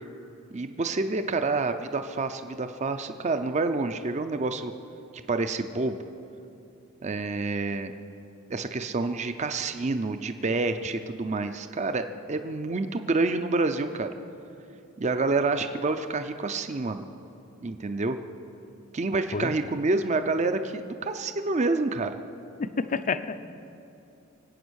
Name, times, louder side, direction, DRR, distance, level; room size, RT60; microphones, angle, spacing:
voice 1, 0.5-4.7 5.3-6.0 7.0-7.9 8.5-14.1 15.0-17.0 17.6-18.2 18.9-22.2, right 3 dB, 35° right, 8 dB, 0.5 m, -28 dB
voice 2, 22.6-23.4, left 4 dB, 40° left, 12 dB, 0.6 m, -29 dB
24.0 x 8.7 x 6.4 m, 2.8 s
head